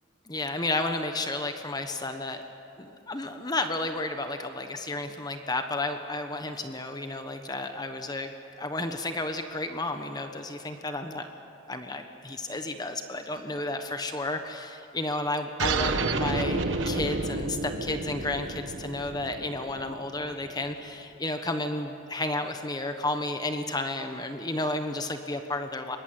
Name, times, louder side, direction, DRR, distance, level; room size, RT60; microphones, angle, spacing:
voice 1, 0.3-2.4 2.8-8.3 8.6-11.3 11.7-26.0, left 2 dB, 20° left, 6 dB, 1.2 m, -32 dB
sound 1, 15.6-20.7, right 3 dB, 75° right, 1.3 m, -30 dB
23.0 x 18.5 x 9.3 m, 2.6 s
head